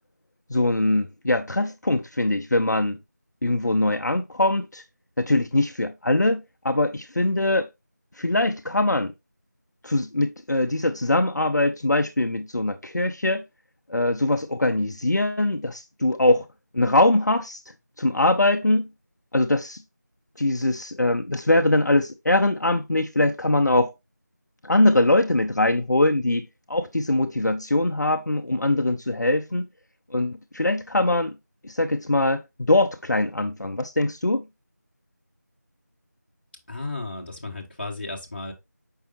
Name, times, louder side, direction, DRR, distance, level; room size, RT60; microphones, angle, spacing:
voice 1, 0.5-3.0 3.4-4.8 5.2-7.7 8.2-9.1 9.8-13.4 13.9-16.4 16.7-17.6 18.0-18.9 19.3-19.8 20.4-23.9 24.6-26.4 26.7-29.7 30.1-31.3 31.6-34.4, left 2 dB, 70° left, 0.7 m, -22 dB
voice 2, 36.7-38.5, left 2 dB, 35° left, 1.5 m, -34 dB
6.8 x 5.6 x 2.6 m
figure-of-eight pair, 170°, 10 cm